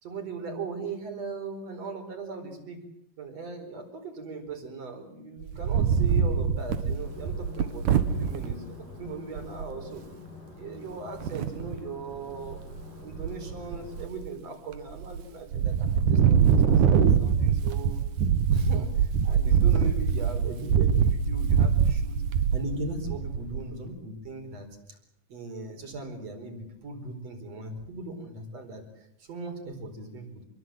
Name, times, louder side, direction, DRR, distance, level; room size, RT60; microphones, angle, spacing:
voice 1, 0.0-2.8 3.2-10.0 10.5-12.6 13.0-18.0 18.5-22.2 22.5-25.0 25.3-30.4, right 3 dB, 50° right, 6 dB, 5.7 m, -38 dB
Wind, 5.4-8.5 9.1-9.2 9.4-9.7 11.2-11.8 12.3-12.8 13.1-14.3 14.8-15.2 15.5-23.7, right 7 dB, 75° right, 2.9 m, -24 dB
sound 1, 7.0-14.0, left 4 dB, 75° left, 8.2 m, -46 dB
28.0 x 22.0 x 7.8 m, 0.77 s
omnidirectional pair, 3.7 m